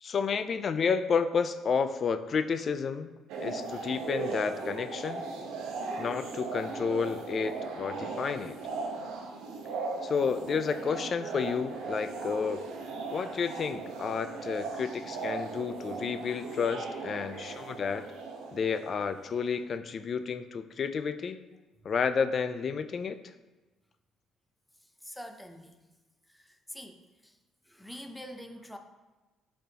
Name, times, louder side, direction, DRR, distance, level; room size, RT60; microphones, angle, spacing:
voice 1, 0.0-3.1 3.4-5.2 6.0-8.5 10.0-12.6 13.1-18.0 18.5-21.4 21.8-23.2, left 6 dB, 45° left, 10 dB, 0.5 m, -31 dB
sound 1, 3.3-19.5, right 4 dB, 85° right, 0.9 m, -38 dB
voice 2, 25.0-25.8 26.3-27.4 27.7-28.8, equal, 5° left, 5 dB, 0.7 m, -45 dB
11.0 x 4.3 x 2.9 m, 1.2 s
cardioid pair, 105°, 0 cm